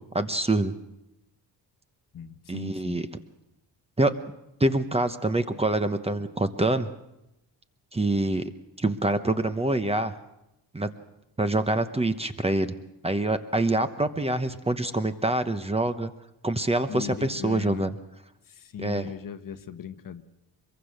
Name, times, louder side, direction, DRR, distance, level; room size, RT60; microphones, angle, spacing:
voice 1, 0.1-0.8 2.5-3.1 4.0-4.1 4.6-6.9 7.9-8.5 8.8-10.1 10.7-10.9 11.4-12.8 13.0-16.1 16.4-18.0 18.8-19.1, right 2 dB, 15° right, 9 dB, 1.0 m, -25 dB
voice 2, 2.1-3.0 16.9-17.9 18.5-20.2, left 8 dB, 50° left, 10 dB, 1.2 m, -38 dB
23.5 x 22.5 x 6.5 m, 0.89 s
cardioid pair, 120°, 42 cm